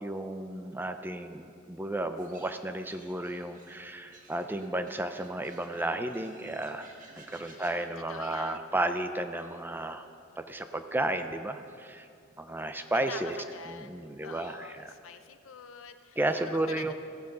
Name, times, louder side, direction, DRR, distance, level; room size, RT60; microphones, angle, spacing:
voice 1, 0.0-6.9 7.2-10.0 10.4-12.1 12.4-13.4 13.7-14.9 16.2-16.9, right 1 dB, 10° right, 8 dB, 0.5 m, -33 dB
sound 1, 2.2-7.7, right 2 dB, 40° right, 1.4 m, -56 dB
voice 2, 7.4-8.7 13.1-14.0 14.2-16.9, left 6 dB, 80° left, 9 dB, 0.7 m, -46 dB
15.0 x 12.0 x 3.9 m, 2.5 s
head